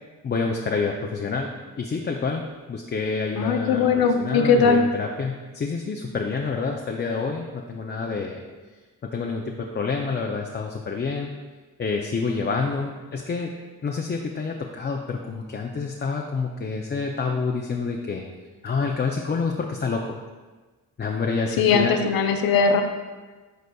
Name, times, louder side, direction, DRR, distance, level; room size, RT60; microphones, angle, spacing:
voice 1, 0.2-1.5 1.8-8.4 9.0-11.3 11.8-13.5 13.8-18.3 18.6-20.2 21.0-21.9, left 4 dB, 30° left, 1 dB, 0.5 m, -28 dB
voice 2, 3.4-4.8 21.6-22.8, left 5 dB, 85° left, 6 dB, 0.7 m, -19 dB
11.0 x 4.0 x 2.3 m, 1.3 s
cardioid pair, 90°, 35 cm